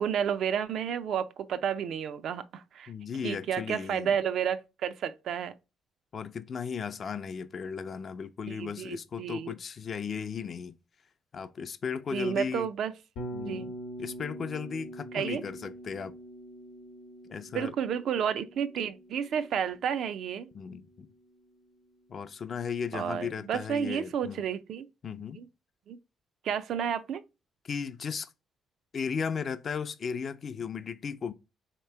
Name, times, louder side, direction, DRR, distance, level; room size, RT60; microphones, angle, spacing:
voice 1, 0.0-2.9 3.2-5.5 8.5-9.5 12.1-12.9 13.4-13.7 15.1-15.4 17.5-20.5 22.9-24.9 25.4-25.5 25.9-26.0 26.4-27.2, right 8 dB, 70° right, 0.4 m, -31 dB
voice 2, 2.9-4.2 6.1-10.8 11.3-12.7 13.3-13.7 14.0-16.2 17.3-17.7 20.5-21.1 22.1-24.4 25.0-25.4 27.6-28.3 28.9-31.3, left 6 dB, 50° left, 0.4 m, -36 dB
Bass guitar, 13.2-21.2, right 1 dB, 90° left, 0.8 m, -44 dB
3.2 x 2.9 x 4.4 m
cardioid pair, 90°, 0 cm